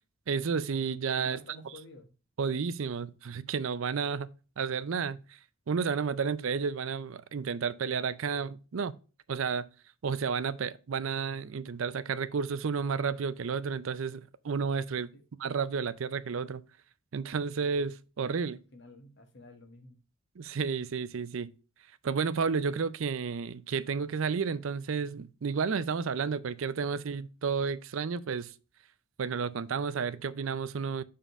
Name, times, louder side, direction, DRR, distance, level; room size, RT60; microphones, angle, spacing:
voice 1, 0.3-1.4 2.4-4.3 4.6-5.2 5.7-8.9 9.3-9.7 10.0-15.1 15.4-16.6 17.1-18.6 20.4-21.5 22.0-28.5 29.2-31.0, right 5 dB, 70° right, 0.5 m, -31 dB
voice 2, 1.2-2.1 2.9-3.0 15.1-15.2 18.7-20.0, left 1 dB, 55° left, 1.5 m, -51 dB
7.1 x 3.8 x 5.4 m
head